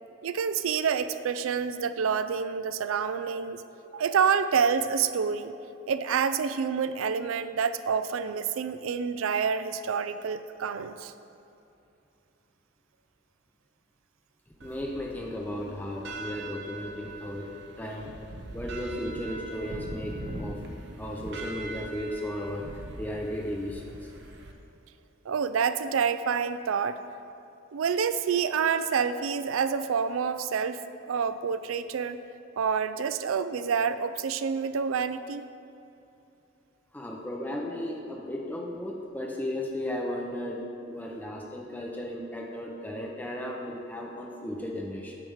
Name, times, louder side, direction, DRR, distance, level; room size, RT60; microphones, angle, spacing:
voice 1, 0.2-3.6 3.9-5.5 5.9-11.1 25.3-27.0 27.7-32.2 32.6-35.4, right 6 dB, 85° right, 12 dB, 0.4 m, -28 dB
voice 2, 14.6-18.2 18.5-20.6 21.0-24.1 36.9-45.2, left 1 dB, 10° left, -1 dB, 0.5 m, -35 dB
sound 1, 14.6-24.5, right 1 dB, 55° right, 0.8 m, -41 dB
9.0 x 4.6 x 6.4 m, 2.7 s
head